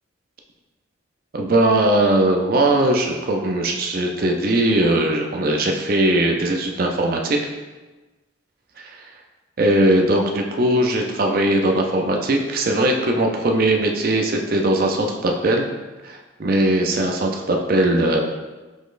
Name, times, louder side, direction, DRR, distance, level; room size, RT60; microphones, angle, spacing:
voice 1, 1.3-7.4 8.8-9.0 9.6-15.7 16.0-18.2, right 1 dB, 50° right, 2 dB, 0.5 m, -19 dB
5.1 x 4.1 x 2.5 m, 1.2 s
head